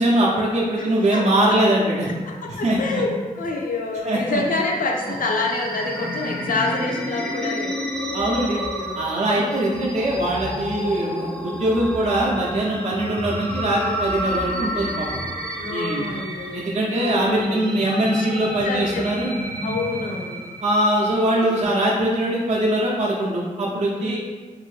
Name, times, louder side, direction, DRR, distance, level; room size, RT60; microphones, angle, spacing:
voice 1, 0.0-2.1 2.5-3.0 4.1-4.4 8.1-8.6 9.0-15.2 15.7-16.1 16.5-19.3 20.6-24.2, right 1 dB, 50° right, -4 dB, 0.5 m, -22 dB
voice 2, 1.1-1.6 2.3-3.1 3.4-7.9 8.5-9.0 9.3-9.7 15.5-16.6 17.0-17.6 18.1-18.4 18.6-19.0 19.6-20.4 24.0-24.2, left 3 dB, 70° left, 0 dB, 0.5 m, -27 dB
sound 1, 4.4-21.6, equal, 5° left, 0.4 m, -31 dB
2.6 x 2.6 x 3.2 m, 1.4 s
wide cardioid pair, 85°, 14 cm